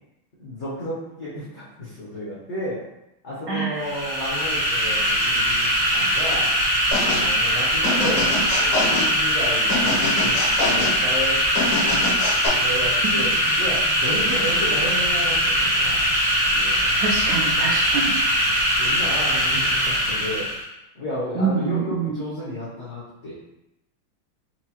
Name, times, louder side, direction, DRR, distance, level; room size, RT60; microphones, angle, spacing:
voice 1, 0.4-2.8 3.2-6.5 7.0-8.3 8.6-11.8 12.6-16.0 16.5-16.9 18.4-20.5 20.9-23.4, left 1 dB, 65° left, -7 dB, 0.7 m, -32 dB
voice 2, 3.5-3.8 13.1-13.2 17.0-18.1 21.4-22.2, right 5 dB, 80° right, -4 dB, 0.9 m, -25 dB
sound 1, 3.8-20.6, equal, 50° right, 1.0 m, -21 dB
sound 2, 6.9-7.3 7.8-9.1 9.7-11.0 11.6-12.5, left 2 dB, 80° left, 1.8 m, -25 dB
4.5 x 2.2 x 2.8 m, 0.88 s
omnidirectional pair, 2.3 m